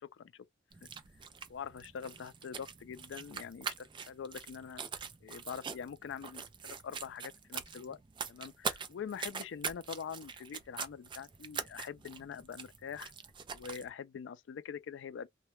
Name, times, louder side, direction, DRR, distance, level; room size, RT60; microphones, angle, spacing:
voice 1, 0.1-0.4 1.5-4.8 5.2-8.0 8.3-13.1 13.5-15.3, left 7 dB, 80° left, 0.3 m, -44 dB
sound 1, 0.7-13.9, right 6 dB, 25° right, 0.4 m, -43 dB
2.1 x 2.1 x 3.0 m
head